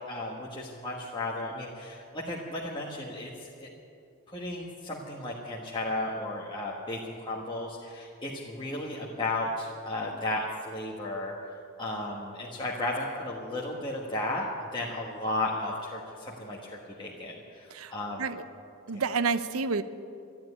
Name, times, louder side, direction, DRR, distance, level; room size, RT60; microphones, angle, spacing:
voice 1, 0.1-3.7 4.3-11.3 11.8-18.3 18.9-19.0, left 2 dB, 20° left, -3 dB, 1.3 m, -34 dB
voice 2, 18.9-19.8, right 5 dB, 70° right, 13 dB, 0.7 m, -29 dB
13.5 x 10.5 x 9.7 m, 2.5 s
head